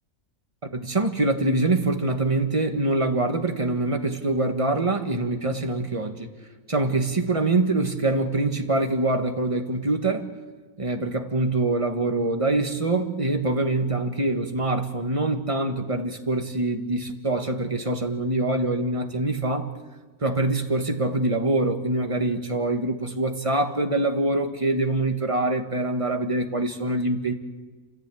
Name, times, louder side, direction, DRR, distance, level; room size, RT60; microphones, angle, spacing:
voice 1, 0.7-6.3 6.7-10.3 10.8-19.7 20.2-27.3, right 2 dB, 20° right, 5 dB, 1.7 m, -24 dB
29.5 x 14.5 x 8.5 m, 1.3 s
omnidirectional pair, 1.6 m